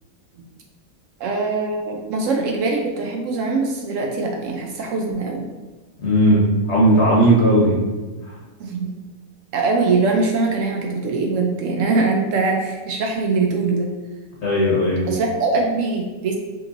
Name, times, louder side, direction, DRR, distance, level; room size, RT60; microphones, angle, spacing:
voice 1, 1.2-5.4 8.6-8.9 9.5-13.9 15.1-16.4, right 3 dB, 70° right, 1 dB, 0.9 m, -22 dB
voice 2, 6.0-7.8 14.4-15.0, right 1 dB, 55° left, -5 dB, 1.1 m, -16 dB
5.1 x 3.0 x 2.5 m, 1.2 s
omnidirectional pair, 1.5 m